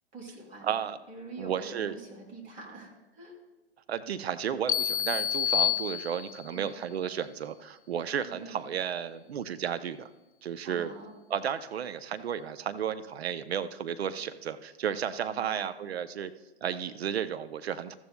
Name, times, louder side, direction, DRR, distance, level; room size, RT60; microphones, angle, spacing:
voice 1, 0.1-3.3 6.5-6.7 8.2-8.6 10.6-11.2 15.3-15.7, right 2 dB, 25° right, 0 dB, 2.8 m, -46 dB
voice 2, 0.6-1.0 1.4-1.9 3.9-10.1 10.4-10.9 11.3-16.3 16.6-18.0, right 8 dB, 70° right, 12 dB, 0.6 m, -33 dB
sound 1, 4.7-6.6, left 10 dB, 55° left, 0.5 m, -28 dB
14.0 x 14.0 x 2.2 m, 1.1 s
hypercardioid pair, 120°, 32 cm